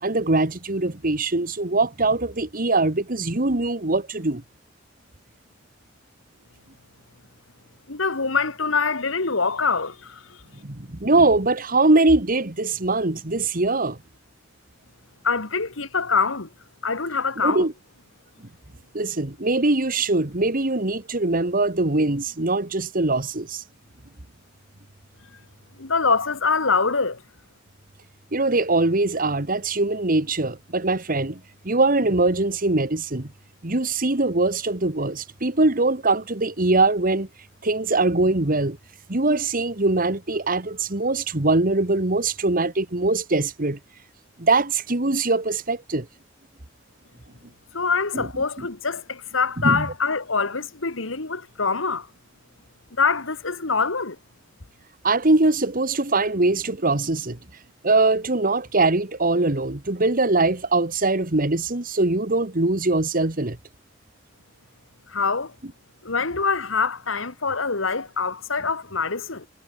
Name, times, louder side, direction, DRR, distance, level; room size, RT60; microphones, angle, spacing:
voice 1, 0.0-4.4 10.6-14.0 17.4-17.7 18.9-23.6 28.3-33.3 33.6-37.3 37.6-38.8 39.1-43.8 44.4-46.1 48.1-48.3 49.6-49.9 55.0-57.4 57.8-63.6, right 2 dB, 45° right, 1.8 m, -22 dB
voice 2, 7.9-10.4 15.2-16.5 16.8-17.7 25.8-27.2 47.7-52.1 53.0-54.2 65.1-65.5 66.0-69.5, left 4 dB, 90° left, 2.1 m, -24 dB
head